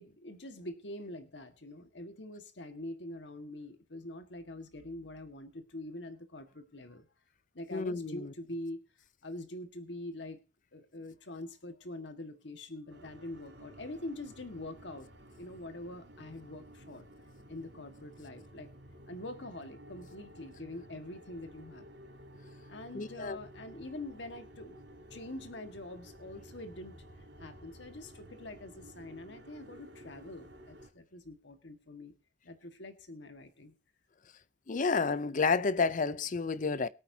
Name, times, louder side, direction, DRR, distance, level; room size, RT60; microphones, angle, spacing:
voice 1, 0.0-7.1 7.5-8.8 9.2-10.4 10.7-15.1 15.4-17.1 17.5-18.7 19.1-21.9 22.7-27.0 27.4-32.1 32.4-33.7, left 1 dB, 70° left, 1.6 m, -44 dB
voice 2, 7.7-8.2 22.9-23.4 34.7-36.9, left 4 dB, 45° left, 0.6 m, -30 dB
sound 1, 12.9-30.9, equal, 75° right, 3.6 m, -53 dB
23.0 x 8.6 x 2.8 m
head